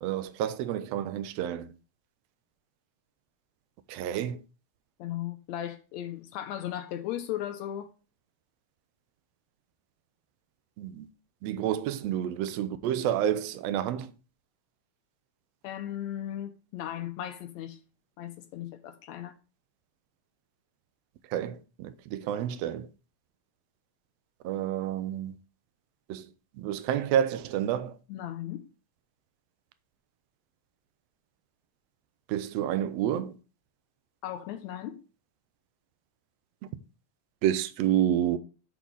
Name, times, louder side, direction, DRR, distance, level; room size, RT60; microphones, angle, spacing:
voice 1, 0.0-1.7 3.9-4.4 10.8-11.1 11.4-14.1 21.3-22.9 24.4-25.3 26.1-26.3 26.6-28.0 32.3-33.4 37.4-38.4, right 10 dB, 75° right, 1.6 m, -29 dB
voice 2, 5.0-7.9 15.6-17.8 18.2-19.3 28.1-28.6 34.2-35.0, left 11 dB, 80° left, 1.8 m, -36 dB
6.1 x 6.1 x 3.9 m
omnidirectional pair, 3.3 m